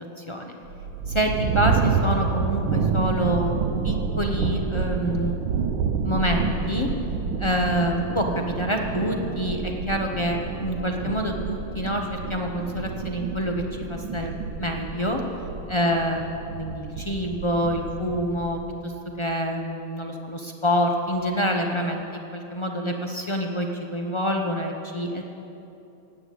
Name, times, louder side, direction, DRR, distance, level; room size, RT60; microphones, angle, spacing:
voice 1, 0.2-0.6 1.1-3.6 3.8-5.4 6.0-6.9 7.4-15.2 15.7-25.2, equal, 50° left, 2 dB, 0.3 m, -27 dB
sound 1, 0.6-18.7, right 5 dB, 85° right, 1.6 m, -29 dB
16.5 x 9.0 x 8.6 m, 2.9 s
omnidirectional pair, 2.2 m